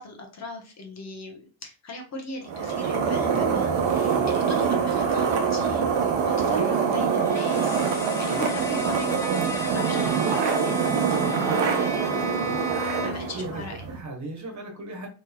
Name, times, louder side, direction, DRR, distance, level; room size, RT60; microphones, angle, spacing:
voice 1, 0.0-7.8 8.2-12.1 13.0-13.9, left 2 dB, 40° left, 1 dB, 0.9 m, -39 dB
sound 1, 2.5-14.0, right 6 dB, 85° right, 0.9 m, -25 dB
Bowed string instrument, 6.9-13.4, equal, 5° left, 0.7 m, -34 dB
sound 2, 7.3-11.5, left 7 dB, 80° left, 0.9 m, -42 dB
voice 2, 13.2-13.6 13.9-15.1, right 2 dB, 40° right, 1 dB, 1.4 m, -37 dB
4.3 x 3.1 x 2.2 m, 0.35 s
cardioid pair, 145°, 42 cm